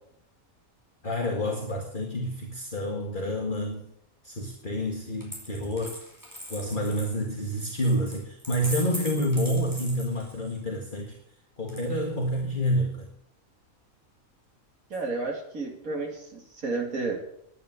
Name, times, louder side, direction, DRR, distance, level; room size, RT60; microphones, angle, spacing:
voice 1, 1.0-3.9 4.2-6.0 6.5-11.2 11.6-13.1, equal, 35° left, 1 dB, 1.9 m, -28 dB
Coin (dropping), 5.2-10.6 11.7-12.4, equal, 15° right, 4.6 m, -41 dB
voice 2, 14.9-17.1, right 3 dB, 85° right, 0 dB, 3.0 m, -31 dB
10.5 x 10.0 x 9.4 m, 0.72 s
omnidirectional pair, 1.5 m